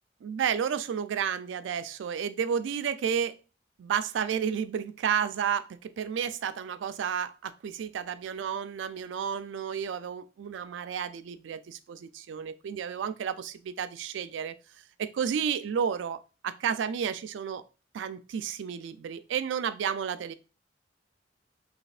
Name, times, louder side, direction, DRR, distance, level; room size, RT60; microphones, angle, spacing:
voice 1, 0.2-3.4 3.8-14.5 15.0-17.6 17.9-20.3, right 7 dB, 85° right, 0.3 m, -31 dB
4.1 x 2.8 x 2.4 m
head